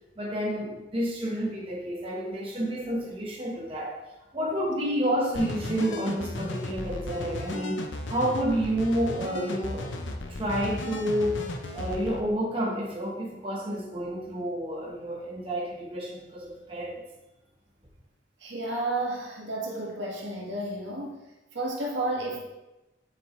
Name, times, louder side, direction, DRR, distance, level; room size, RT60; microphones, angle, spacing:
voice 1, 0.2-4.0 4.3-9.9 10.3-11.4 11.7-17.0, equal, 30° right, -5 dB, 1.3 m, -29 dB
sound 1, 5.3-12.2, left 2 dB, 80° left, 0.8 m, -35 dB
voice 2, 18.4-21.2 21.5-22.5, right 2 dB, 75° right, -2 dB, 1.7 m, -32 dB
7.6 x 6.4 x 3.2 m, 1.0 s
head